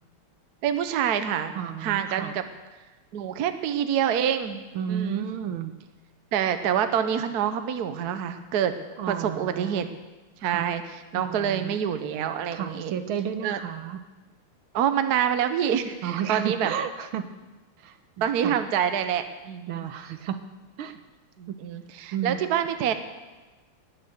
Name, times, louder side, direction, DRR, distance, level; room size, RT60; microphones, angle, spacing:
voice 1, 0.6-1.5 1.8-2.4 3.1-4.6 4.9-5.3 6.3-8.8 9.1-9.9 10.4-12.9 13.4-13.6 14.7-16.7 18.2-19.9 21.4-22.9, right 9 dB, 60° right, 9 dB, 1.2 m, -26 dB
voice 2, 1.5-2.3 4.7-5.7 9.0-10.0 10.4-10.7 11.1-11.8 12.5-14.0 16.0-17.2 17.8-18.6 19.7-20.4 20.8-21.0 21.5-21.6 22.1-22.4, right 9 dB, 75° right, 9 dB, 1.7 m, -32 dB
19.5 x 6.7 x 8.0 m, 1.2 s
omnidirectional pair, 2.4 m